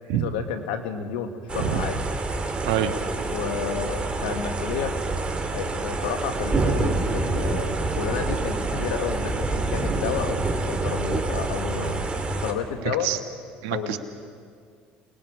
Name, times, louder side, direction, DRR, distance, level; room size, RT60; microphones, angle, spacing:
voice 1, 0.1-2.0 3.3-5.0 5.5-12.0 12.4-13.1 13.7-14.0, left 7 dB, 90° left, 7 dB, 1.7 m, -31 dB
sound 1, 1.5-12.5, right 3 dB, 25° right, 2.6 m, -27 dB
voice 2, 2.7-3.0 12.8-13.2 13.6-14.0, right 11 dB, 80° right, 7 dB, 1.5 m, -26 dB
28.5 x 20.0 x 4.9 m, 2.2 s
supercardioid pair, 80°, 4 cm